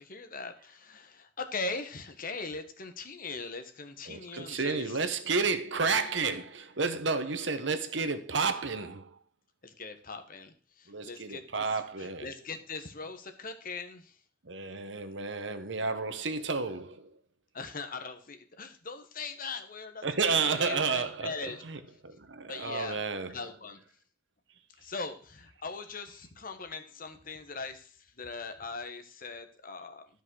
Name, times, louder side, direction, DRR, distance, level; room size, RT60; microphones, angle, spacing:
voice 1, 0.0-5.0 9.6-14.2 17.5-20.1 20.5-21.6 22.5-23.0 23.3-23.8 24.8-30.1, left 4 dB, 50° left, 1.3 m, -40 dB
voice 2, 4.1-9.1 10.9-12.3 14.4-17.1 20.0-21.3 21.6-23.4, right 4 dB, 70° right, 1.2 m, -31 dB
12.5 x 5.4 x 6.3 m
head